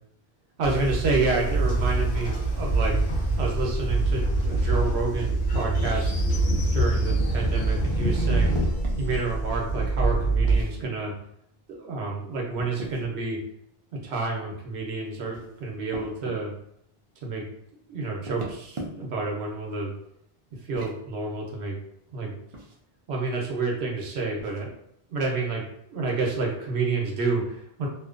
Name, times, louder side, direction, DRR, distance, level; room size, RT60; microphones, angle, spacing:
Train, 0.6-10.6, right 2 dB, 80° left, 1.1 m, -24 dB
voice 1, 0.6-3.1 3.4-6.1 6.7-8.6 9.0-11.1 11.7-13.4 13.9-16.5 17.2-17.4 17.9-19.9 20.6-21.8 22.1-22.3 23.1-24.7 25.1-27.9, right 3 dB, 85° right, -1 dB, 1.0 m, -29 dB
sound 1, 8.2-9.0 10.4-10.9 12.6-13.1 15.0-16.4 18.1-19.2 20.6-21.0 22.5-22.8 24.4-24.6, right 1 dB, 40° right, 0.4 m, -39 dB
2.7 x 2.2 x 2.4 m, 0.73 s
omnidirectional pair, 1.1 m